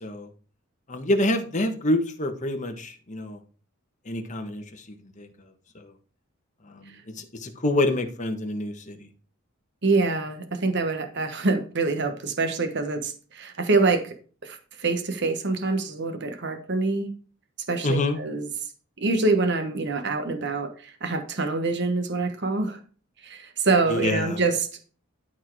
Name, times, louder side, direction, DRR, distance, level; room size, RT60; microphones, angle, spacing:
voice 1, 0.9-3.4 4.0-5.3 5.7-5.9 6.7-9.1 17.8-18.2 23.9-24.4, left 1 dB, 35° left, 5 dB, 1.5 m, -27 dB
voice 2, 9.8-14.1 14.4-17.1 17.7-18.5 19.0-22.8 23.2-24.7, right 3 dB, 55° right, 8 dB, 1.3 m, -25 dB
12.0 x 4.6 x 4.9 m, 0.40 s
head